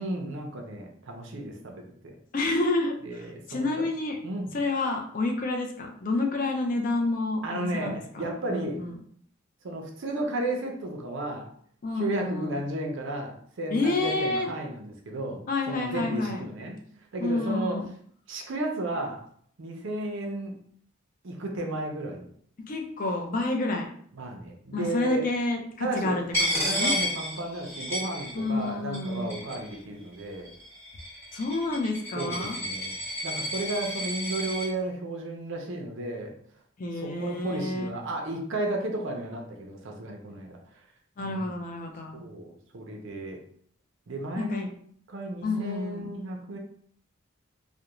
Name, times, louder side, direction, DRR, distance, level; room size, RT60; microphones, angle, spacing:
voice 1, 0.0-2.1 3.0-3.8 4.2-4.5 7.4-8.8 9.6-11.5 12.0-15.4 15.7-16.8 17.1-17.8 18.3-19.2 19.6-20.6 21.2-22.2 24.1-25.2 25.8-26.2 26.5-30.5 32.2-33.0 33.2-36.3 36.9-40.6 41.2-41.6 42.1-43.4 44.1-44.7 45.1-46.6, right 2 dB, 60° right, 2 dB, 0.5 m, -33 dB
voice 2, 2.3-4.2 4.5-8.9 11.8-12.5 13.7-14.5 15.5-16.4 17.2-17.9 22.7-23.9 24.7-26.2 26.5-26.9 28.3-29.4 31.3-32.6 36.8-37.9 41.2-42.2 44.4-44.6 45.4-46.1, left 2 dB, 40° left, 3 dB, 0.4 m, -29 dB
Coin (dropping), 26.3-28.7 28.9-29.8 30.5-34.7, equal, 10° left, 1.2 m, -31 dB
2.4 x 2.1 x 2.9 m, 0.62 s
head